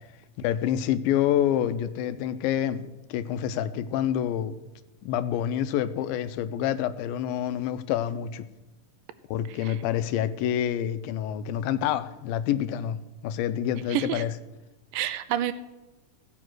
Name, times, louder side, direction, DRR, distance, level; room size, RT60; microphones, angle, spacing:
voice 1, 0.4-4.5 5.0-8.5 9.3-14.3, left 10 dB, 90° left, 2.4 m, -27 dB
voice 2, 13.9-14.2 14.9-15.5, right 11 dB, 80° right, 2.2 m, -28 dB
15.0 x 7.5 x 6.2 m
omnidirectional pair, 4.0 m